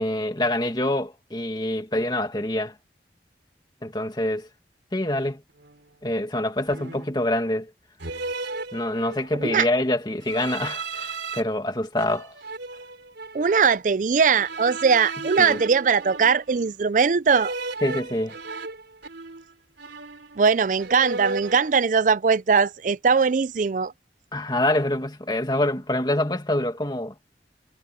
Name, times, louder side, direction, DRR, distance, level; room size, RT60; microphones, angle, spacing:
voice 1, 0.0-2.7 3.8-4.5 4.9-5.4 6.0-7.7 8.7-12.3 15.4-15.6 17.8-18.4 24.3-27.1, left 1 dB, 25° left, 2.3 m, -25 dB
sound 1, 5.6-5.8 6.7-7.2 8.0-9.4 10.2-11.4 12.0-13.5 14.3-16.7 17.3-19.5 19.8-20.5 20.8-21.7, right 3 dB, 90° right, 3.2 m, -35 dB
voice 2, 13.3-17.5 20.4-23.9, right 5 dB, 45° right, 0.4 m, -20 dB
head